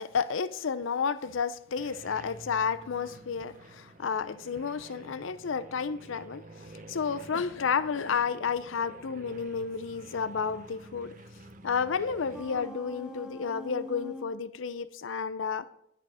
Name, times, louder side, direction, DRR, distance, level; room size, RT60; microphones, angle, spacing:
voice 1, 0.0-6.4 6.7-11.1 11.6-15.7, left 6 dB, 85° left, 15 dB, 0.6 m, -31 dB
sound 1, 1.8-12.7, right 2 dB, 45° right, 0.9 m, -50 dB
sound 2, 10.2-10.3 12.0-14.3, left 2 dB, 5° right, 0.9 m, -43 dB
11.0 x 10.0 x 5.5 m, 0.75 s
head